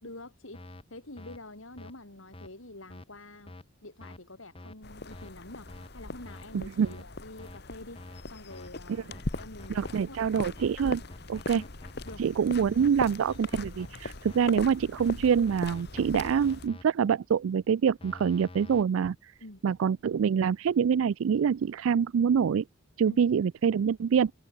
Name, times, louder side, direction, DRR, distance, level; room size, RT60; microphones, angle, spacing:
voice 1, 0.0-3.5 3.8-8.0 8.3-10.2 11.6-11.7 12.0-12.2 19.4-19.7 23.1-23.2, left 2 dB, 85° left, 4.9 m, -47 dB
sound 1, 0.5-0.8 1.2-1.4 1.8-1.9 2.3-2.5 2.9-3.0 3.5-3.6 4.0-4.2 4.5-4.8 5.1-5.3 5.7-5.9 6.2-6.4 6.8-7.0 7.4-7.6 7.9-8.2 8.5-8.7 9.1-9.9 10.3-12.1 12.5-14.4 15.0-16.8 18.0-18.8, left 1 dB, 25° left, 1.2 m, -46 dB
sound 2, 4.8-16.7, left 2 dB, 55° left, 1.7 m, -40 dB
voice 2, 6.5-6.9 9.7-11.0 11.3-11.6 12.2-19.3 19.6-22.6 23.0-24.3, right 7 dB, 90° right, 0.4 m, -25 dB
open air
head